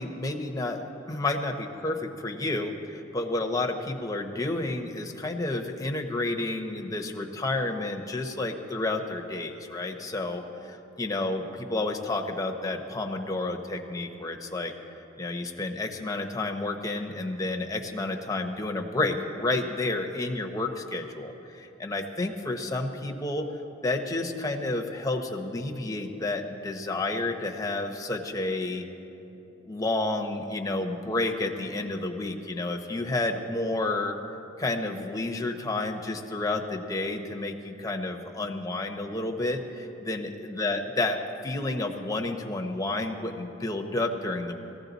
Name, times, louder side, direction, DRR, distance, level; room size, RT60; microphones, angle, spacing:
voice 1, 0.0-14.7 15.2-23.5 23.8-28.8 29.7-34.2 34.6-41.2 41.4-44.5, left 2 dB, 20° left, 2 dB, 0.9 m, -30 dB
18.0 x 15.0 x 4.0 m, 3.0 s
head